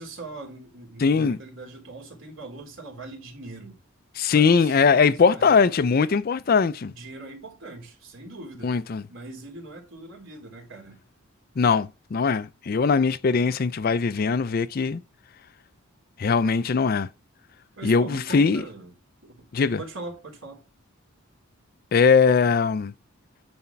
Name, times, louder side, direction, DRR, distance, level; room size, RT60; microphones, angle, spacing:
voice 1, 0.0-3.8 4.3-5.6 6.9-8.8 9.1-11.0 17.8-18.9 19.2-19.5 19.8-20.6, right 2 dB, 65° right, 3.3 m, -41 dB
voice 2, 1.0-1.4 4.2-6.9 8.6-9.0 11.6-15.0 16.2-17.1 17.8-18.6 19.5-19.8 21.9-22.9, left 5 dB, 45° left, 0.4 m, -21 dB
9.7 x 4.4 x 5.7 m
head